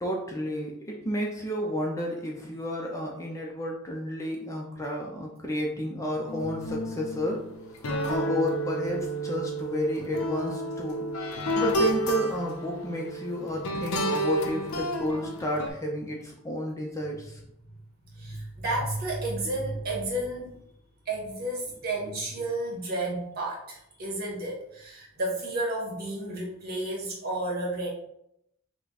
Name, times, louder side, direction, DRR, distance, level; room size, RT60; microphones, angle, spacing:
voice 1, 0.0-7.4 8.0-11.1 11.6-17.4, equal, 15° left, -1 dB, 0.6 m, -31 dB
sound 1, 6.3-15.7, equal, 80° left, 0.7 m, -31 dB
voice 2, 18.0-20.6 21.1-27.9, right 1 dB, 45° right, -3 dB, 1.7 m, -32 dB
5.7 x 2.2 x 4.0 m, 0.77 s
head